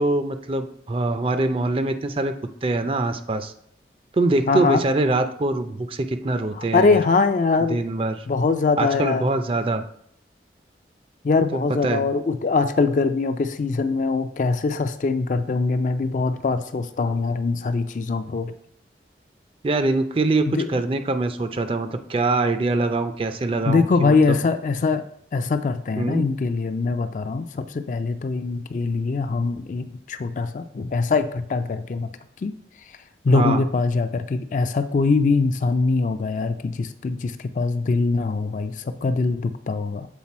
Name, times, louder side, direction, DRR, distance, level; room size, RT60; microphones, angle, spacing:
voice 1, 0.0-2.3 2.6-3.5 4.1-7.0 7.7-8.2 8.8-9.8 11.5-12.0 19.6-24.4 26.0-26.2 33.3-33.6, right 2 dB, 30° right, 9 dB, 0.4 m, -23 dB
voice 2, 4.5-4.8 6.5-7.8 8.3-9.3 11.2-18.5 20.5-20.7 23.7-25.1 25.3-32.1 32.4-32.5 33.2-40.1, left 4 dB, 45° left, 10 dB, 0.3 m, -22 dB
7.4 x 3.9 x 4.2 m, 0.68 s
head